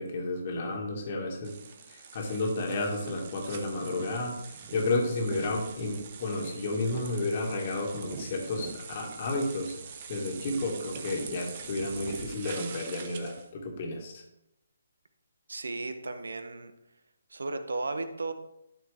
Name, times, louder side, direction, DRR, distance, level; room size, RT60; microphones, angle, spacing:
voice 1, 0.0-1.6 1.9-14.2, left 2 dB, 40° left, 1 dB, 1.8 m, -32 dB
sound 1, 1.4-13.5, right 6 dB, 40° right, 0.8 m, -43 dB
voice 2, 15.5-16.7 17.3-18.3, right 3 dB, 70° right, 9 dB, 0.9 m, -34 dB
12.0 x 4.2 x 3.3 m, 0.85 s
figure-of-eight pair, 145°, 0 cm